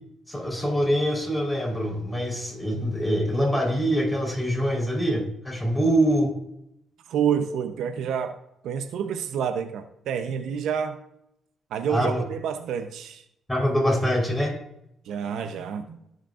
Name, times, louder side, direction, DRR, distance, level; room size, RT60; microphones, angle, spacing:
voice 1, 0.3-6.3 11.9-12.2 13.5-14.5, equal, 5° left, -2 dB, 3.9 m, -24 dB
voice 2, 7.1-8.3 8.6-11.0 11.7-13.2 15.1-16.0, right 8 dB, 80° right, 8 dB, 0.7 m, -28 dB
17.0 x 6.5 x 2.5 m, 0.79 s
cardioid pair, 90°, 0 cm